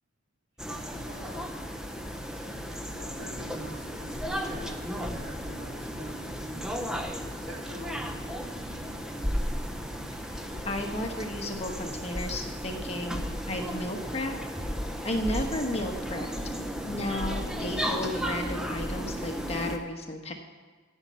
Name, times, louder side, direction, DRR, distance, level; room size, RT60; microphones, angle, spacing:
sound 1, 0.6-19.8, equal, 5° right, 0.6 m, -34 dB
voice 1, 0.7-1.6 2.9-8.6 10.1-10.3, equal, 85° right, -1 dB, 2.6 m, -45 dB
sound 2, 3.2-15.4 16.0-16.1, right 1 dB, 65° right, 2.6 m, -55 dB
voice 2, 10.6-14.3 15.0-16.3 16.9-20.3, left 1 dB, 35° left, 3 dB, 1.2 m, -33 dB
14.5 x 5.6 x 7.4 m, 1.5 s
head